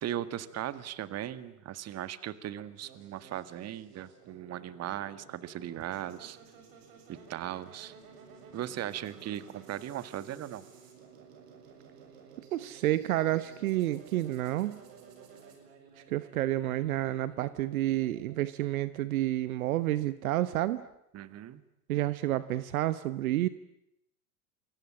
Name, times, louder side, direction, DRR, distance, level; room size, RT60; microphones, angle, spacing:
voice 1, 0.0-6.4 7.1-8.0 8.5-10.6 21.1-21.6, right 12 dB, 35° right, 15 dB, 1.8 m, -38 dB
sound 1, 2.8-18.9, right 6 dB, 50° right, 7.3 m, -54 dB
voice 2, 12.5-14.8 16.1-20.8 21.9-23.5, right 14 dB, 65° right, 15 dB, 1.2 m, -30 dB
28.5 x 23.5 x 8.7 m, 0.80 s
hypercardioid pair, 95°, 46 cm